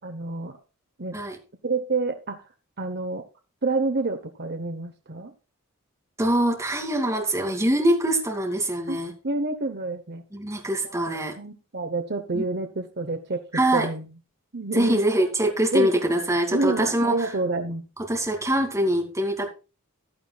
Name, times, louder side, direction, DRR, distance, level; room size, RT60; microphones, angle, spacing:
voice 1, 0.0-0.6 1.0-1.2 1.6-2.4 2.8-3.2 3.6-5.3 8.9-9.0 9.2-10.2 10.8-13.4 13.7-14.1 14.5-15.0 15.7-16.0 16.5-17.9, right 3 dB, 50° right, 6 dB, 1.1 m, -28 dB
voice 2, 6.2-9.1 10.3-11.3 12.3-12.4 13.5-13.9 14.7-17.3 18.1-19.5, right 1 dB, 15° right, 2 dB, 2.6 m, -23 dB
15.0 x 11.0 x 2.4 m, 0.32 s
head